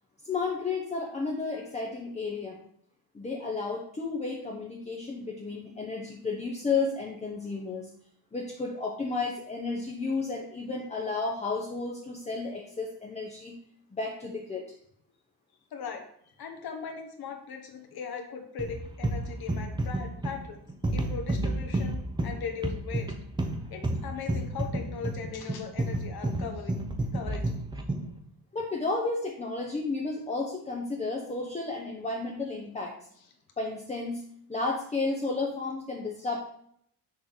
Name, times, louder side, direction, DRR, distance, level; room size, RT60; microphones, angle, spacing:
voice 1, 0.2-2.6 3.1-7.9 8.3-13.6 13.9-14.6 28.5-32.9 33.6-34.2 34.5-36.4, left 3 dB, 15° left, -2 dB, 0.8 m, -32 dB
voice 2, 15.7-20.6 20.9-23.1 23.7-26.7 27.1-27.4, left 6 dB, 65° left, 4 dB, 1.4 m, -39 dB
sound 1, 18.6-28.2, right 1 dB, 10° right, 0.6 m, -31 dB
6.4 x 3.8 x 6.0 m, 0.67 s
cardioid pair, 160°, 40 cm